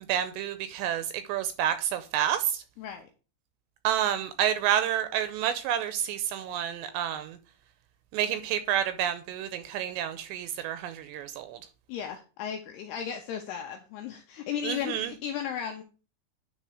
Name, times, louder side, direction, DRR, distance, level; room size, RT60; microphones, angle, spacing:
voice 1, 0.1-2.6 3.8-7.4 8.1-11.6 14.6-15.1, right 10 dB, 85° right, 2.6 m, -29 dB
voice 2, 2.8-3.1 11.9-15.8, left 8 dB, 80° left, 2.4 m, -35 dB
9.9 x 3.9 x 4.7 m
omnidirectional pair, 5.4 m